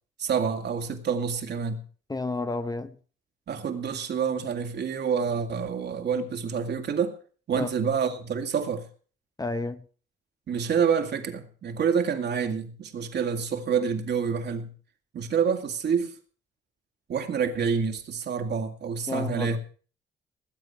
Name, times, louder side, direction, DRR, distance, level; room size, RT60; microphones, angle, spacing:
voice 1, 0.2-1.8 3.5-7.1 7.5-8.8 10.5-14.7 15.1-16.1 17.1-19.6, right 6 dB, 60° right, 2.4 m, -27 dB
voice 2, 2.1-2.9 7.5-7.7 9.4-9.8 19.1-19.6, left 3 dB, 20° left, 0.9 m, -31 dB
19.5 x 8.1 x 5.9 m
cardioid pair, 90°, 20 cm